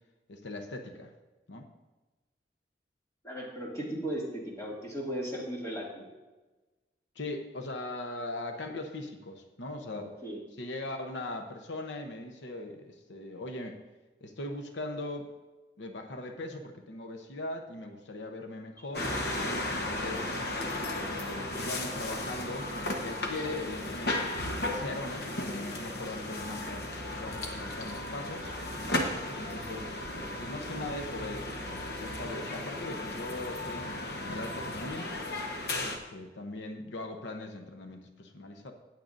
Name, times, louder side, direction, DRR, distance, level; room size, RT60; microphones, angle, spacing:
voice 1, 0.3-1.1 1.5-1.7 7.1-10.1 10.6-13.8 14.2-15.3 15.8-19.1 19.6-20.3 20.9-26.9 27.1-28.5 29.4-31.7 32.0-35.2 35.8-38.7, left 2 dB, 90° left, 4 dB, 0.9 m, -40 dB
voice 2, 3.2-6.1 9.9-10.4, equal, 15° left, -5 dB, 2.4 m, -36 dB
sound 1, 18.9-36.0, left 1 dB, 60° left, 1.2 m, -35 dB
17.5 x 7.7 x 2.6 m, 1.2 s
head